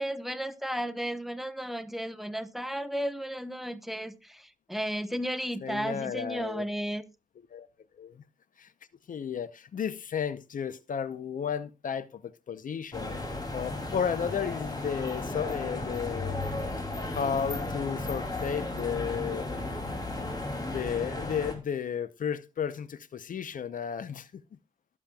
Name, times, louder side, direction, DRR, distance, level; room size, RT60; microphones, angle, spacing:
voice 1, 0.0-7.0, equal, ahead, 1.0 m, -34 dB
voice 2, 5.6-6.6 7.5-7.7 8.0-8.2 8.6-8.7 9.1-13.2 13.5-16.4 17.1-19.5 20.7-24.4, left 7 dB, 75° left, 0.7 m, -33 dB
sound 1, 12.9-21.6, left 2 dB, 30° left, 2.8 m, -34 dB
20.5 x 7.2 x 2.3 m
wide cardioid pair, 90°, 14 cm